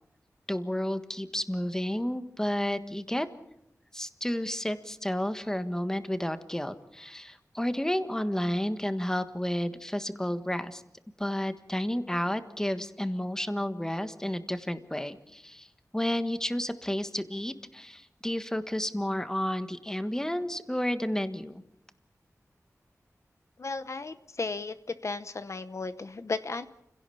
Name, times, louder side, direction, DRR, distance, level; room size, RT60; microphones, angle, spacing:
voice 1, 0.5-3.3 3.9-10.8 11.2-15.7 15.9-21.6, left 1 dB, 10° left, 10 dB, 1.5 m, -31 dB
voice 2, 23.6-24.7 25.0-26.7, left 3 dB, 55° left, 11 dB, 0.9 m, -34 dB
29.5 x 17.0 x 7.0 m, 0.85 s
wide cardioid pair, 85°, 6 cm